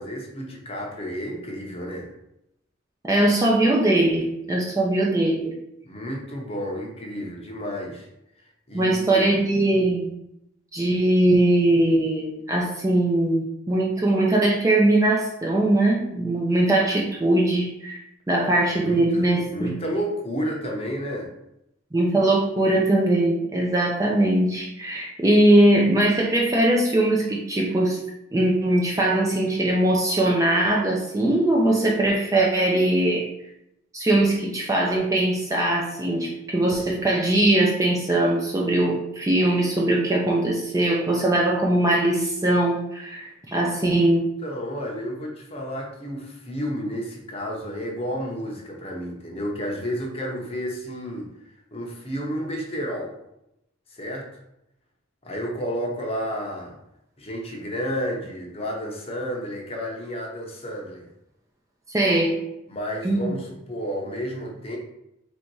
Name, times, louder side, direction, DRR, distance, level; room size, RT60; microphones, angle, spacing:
voice 1, 0.0-2.1 5.8-8.1 8.7-9.2 18.7-21.3 44.1-51.3 51.7-53.1 53.9-54.3 55.2-56.8 57.2-61.1 62.7-64.8, equal, 30° left, 0 dB, 0.8 m, -31 dB
voice 2, 3.0-5.5 8.7-10.1 10.7-18.0 18.3-19.8 21.9-28.0 28.3-33.3 33.9-44.3 61.9-62.4 63.0-63.3, right 1 dB, 15° right, -2 dB, 0.4 m, -21 dB
3.4 x 2.7 x 4.6 m, 0.83 s
head